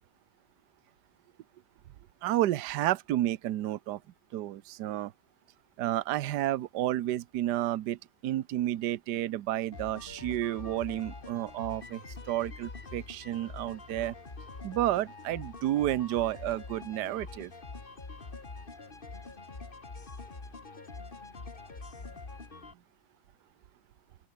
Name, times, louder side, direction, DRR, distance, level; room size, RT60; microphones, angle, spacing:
voice 1, 2.2-4.0 4.3-5.1 5.8-14.1 14.6-17.5, right 13 dB, 75° right, 1.4 m, -31 dB
sound 1, 9.7-22.7, left 3 dB, 30° left, 2.2 m, -45 dB
open air
omnidirectional pair, 1.9 m